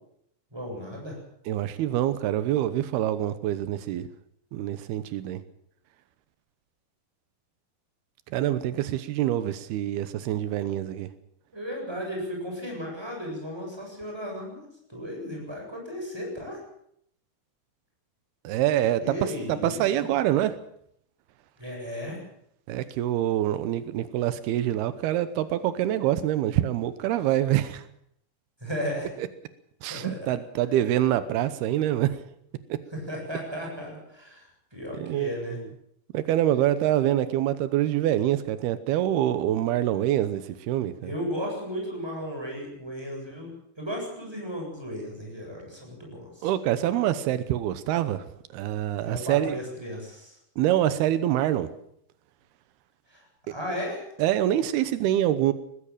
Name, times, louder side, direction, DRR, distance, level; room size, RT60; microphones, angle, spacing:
voice 1, 0.5-1.2 11.5-14.6 14.9-16.6 19.0-19.9 21.6-22.2 28.6-29.1 29.9-30.3 32.9-35.6 41.0-43.5 43.8-46.5 49.0-50.4 53.1-54.1, equal, 5° right, 0 dB, 7.8 m, -35 dB
voice 2, 1.5-4.1 4.5-5.4 8.3-11.1 18.4-20.6 22.7-27.8 29.2-29.3 29.8-32.2 35.0-35.7 36.1-41.1 46.4-48.2 48.5-49.6 50.6-51.7 54.2-55.5, right 12 dB, 85° right, 13 dB, 3.0 m, -25 dB
20.0 x 15.5 x 8.9 m, 0.72 s
omnidirectional pair, 4.4 m